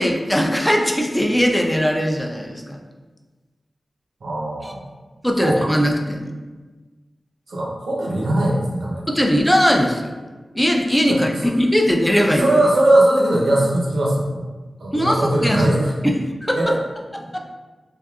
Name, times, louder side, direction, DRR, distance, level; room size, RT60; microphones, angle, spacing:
voice 1, 0.0-2.8 4.6-4.7 5.2-6.3 9.1-10.1 10.5-12.5 14.9-15.6 16.0-16.1 16.4-16.7 17.3-17.4, equal, 10° left, 2 dB, 0.5 m, -19 dB
voice 2, 4.2-4.8 5.4-5.7 7.5-9.1 11.1-11.2 12.4-14.4 14.8-15.9 16.6-16.7, right 1 dB, 85° right, -4 dB, 0.7 m, -19 dB
3.5 x 2.7 x 2.4 m, 1.3 s
cardioid pair, 45°, 0 cm